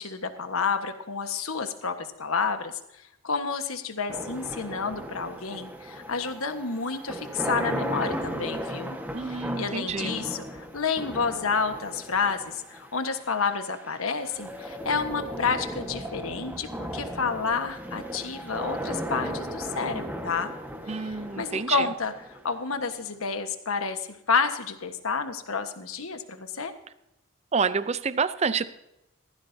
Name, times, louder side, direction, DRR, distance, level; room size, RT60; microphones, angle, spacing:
voice 1, 0.0-2.8 3.2-9.0 9.2-20.5 20.9-22.1 22.4-26.7, left 5 dB, 85° left, 8 dB, 1.4 m, -30 dB
sound 1, 4.1-23.1, equal, 10° right, 1.4 m, -36 dB
voice 2, 9.1-10.2 20.9-21.9 27.5-28.6, right 5 dB, 30° right, 14 dB, 0.5 m, -28 dB
16.5 x 14.5 x 2.7 m, 0.87 s
head